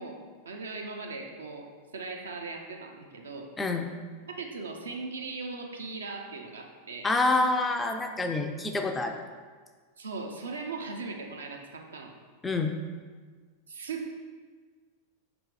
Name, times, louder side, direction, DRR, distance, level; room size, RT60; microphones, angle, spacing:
voice 1, 0.0-3.5 4.3-7.1 10.0-12.1 13.7-14.2, right 3 dB, 70° right, 2 dB, 0.5 m, -39 dB
voice 2, 7.0-9.2 12.4-12.7, left 2 dB, 10° left, 5 dB, 0.3 m, -27 dB
5.0 x 2.9 x 3.6 m, 1.5 s
figure-of-eight pair, 90°, 0 cm